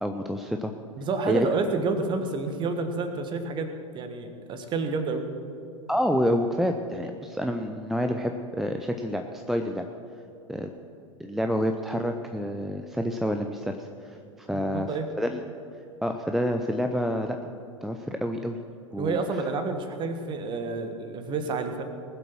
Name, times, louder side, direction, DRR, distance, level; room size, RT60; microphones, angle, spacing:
voice 1, 0.0-0.7 1.3-1.5 5.9-9.9 10.5-10.7 11.2-14.9 15.2-15.4 16.0-17.4 17.8-18.6 18.9-19.2, equal, ahead, 5 dB, 0.5 m, -28 dB
voice 2, 1.0-5.2 14.5-15.1 19.0-21.8, right 4 dB, 25° right, 7 dB, 1.4 m, -29 dB
20.0 x 7.7 x 6.3 m, 2.7 s
figure-of-eight pair, 90°, 17 cm